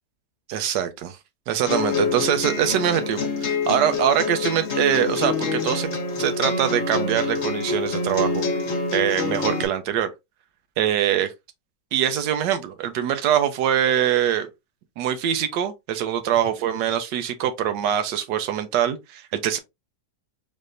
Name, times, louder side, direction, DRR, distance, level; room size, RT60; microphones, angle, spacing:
voice 1, 0.5-1.2 1.5-5.9 6.2-8.4 8.9-10.1 10.8-11.3 11.9-14.5 15.0-19.6, right 10 dB, 85° right, 1.3 m, -23 dB
sound 1, 1.7-9.7, left 4 dB, 50° left, 1.0 m, -26 dB
3.6 x 3.2 x 2.5 m
omnidirectional pair, 1.8 m